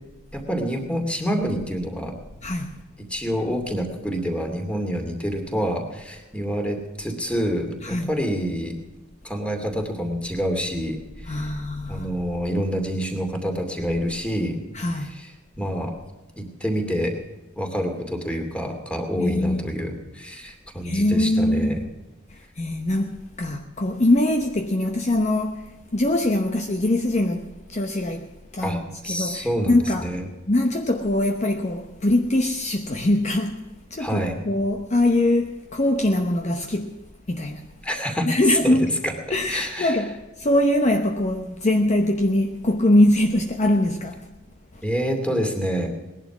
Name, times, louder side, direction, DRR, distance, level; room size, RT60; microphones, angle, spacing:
voice 1, 0.3-2.2 3.1-8.8 9.2-11.5 11.9-14.6 15.1-15.3 15.6-15.9 16.4-17.2 17.6-21.8 28.6-28.8 29.0-30.3 34.0-34.3 37.8-38.4 38.6-39.1 39.5-40.0 44.8-45.9, equal, 5° left, 2.5 m, -27 dB
voice 2, 2.4-2.7 7.8-8.1 11.2-12.1 14.7-15.1 19.2-19.7 20.8-21.7 22.3-30.1 30.5-36.9 37.3-37.7 38.3-38.9 39.3-44.3 44.7-44.8, left 1 dB, 35° left, 0.9 m, -23 dB
19.5 x 11.0 x 6.0 m
head